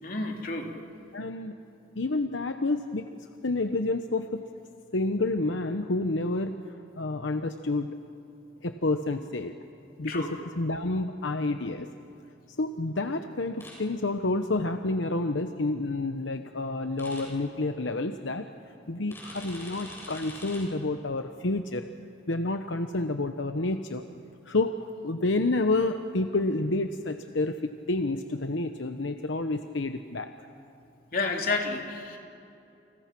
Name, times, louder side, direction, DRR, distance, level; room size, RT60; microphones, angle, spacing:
voice 1, 0.0-0.7 10.1-10.3 31.1-32.2, left 3 dB, 45° left, 1 dB, 3.2 m, -30 dB
voice 2, 1.1-1.6 2.0-3.1 3.4-4.4 4.9-6.6 7.0-8.0 8.6-9.5 10.0-11.9 12.6-18.5 18.9-21.9 22.3-24.0 24.5-30.3, left 2 dB, 75° left, 7 dB, 0.9 m, -29 dB
sound 1, 13.6-13.7 17.0-17.2 19.1-20.6, left 1 dB, 15° left, 7.5 m, -43 dB
30.0 x 29.0 x 6.1 m, 2.7 s
head